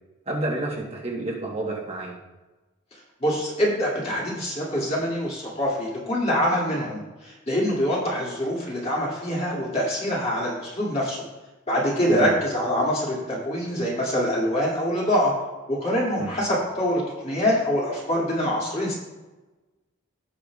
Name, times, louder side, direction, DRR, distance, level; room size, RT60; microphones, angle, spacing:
voice 1, 0.3-2.2 12.1-12.3 16.2-16.3, right 1 dB, 30° right, -3 dB, 1.2 m, -29 dB
voice 2, 3.2-11.2 11.7-15.3 15.7-18.9, equal, 30° left, -5 dB, 2.4 m, -25 dB
17.0 x 5.7 x 2.4 m, 1.1 s
head